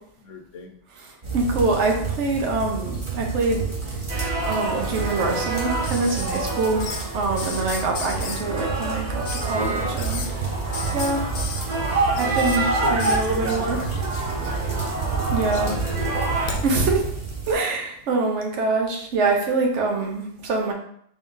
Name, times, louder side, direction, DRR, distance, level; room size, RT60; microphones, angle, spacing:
voice 1, 0.2-0.8 12.6-14.9 15.5-16.4, left 5 dB, 85° left, 5 dB, 1.0 m, -37 dB
sound 1, 1.2-17.5, right 5 dB, 30° right, 0.8 m, -30 dB
voice 2, 1.3-4.0 4.4-6.8 7.1-10.5 10.9-11.2 12.1-13.8 15.3-15.7 16.6-17.0 17.5-20.7, right 3 dB, 70° right, 1 dB, 1.1 m, -25 dB
sound 2, 4.1-16.6, right 2 dB, 50° right, 0.5 m, -28 dB
sound 3, 5.8-7.0 7.4-8.4 9.2-9.5 9.9-10.3 10.7-12.6 13.0-13.3 14.3-14.9 15.2-16.6 18.0-18.1, left 5 dB, 60° left, 0.7 m, -34 dB
3.8 x 3.7 x 2.6 m, 0.67 s
omnidirectional pair, 1.2 m